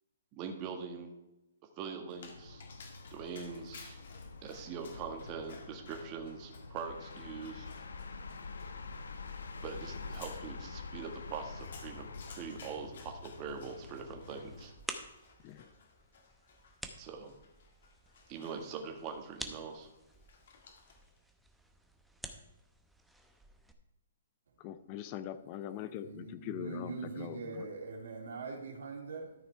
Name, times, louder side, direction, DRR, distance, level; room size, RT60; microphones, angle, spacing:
voice 1, 0.3-1.1 1.8-2.6 3.1-4.0 4.4-7.7 9.6-14.7 17.0-17.3 18.3-19.9, right 6 dB, 30° right, 1.6 m, -43 dB
Dog, 2.1-21.2, left 5 dB, 65° left, 2.0 m, -57 dB
sound 1, 2.2-14.8, left 4 dB, 90° left, 1.1 m, -47 dB
sound 2, 13.6-23.7, right 1 dB, ahead, 0.8 m, -50 dB
voice 2, 24.6-27.6, left 10 dB, 30° left, 0.6 m, -42 dB
voice 3, 26.0-29.3, right 4 dB, 80° right, 2.8 m, -42 dB
13.5 x 5.9 x 4.5 m
hypercardioid pair, 150°, 0 cm